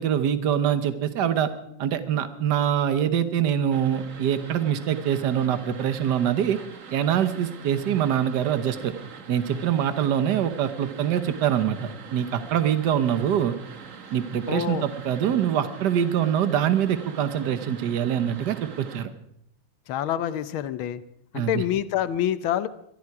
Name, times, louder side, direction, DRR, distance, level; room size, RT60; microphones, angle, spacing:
voice 1, 0.0-1.5 1.8-6.6 6.9-8.9 9.3-13.5 14.1-19.1 21.3-21.6, right 9 dB, 60° right, 11 dB, 1.6 m, -24 dB
sound 1, 3.7-19.0, right 6 dB, 45° right, 1.4 m, -43 dB
voice 2, 14.5-14.9 19.9-21.0 21.3-22.7, left 11 dB, 90° left, 14 dB, 1.6 m, -26 dB
22.0 x 14.0 x 4.8 m, 0.75 s
omnidirectional pair, 2.2 m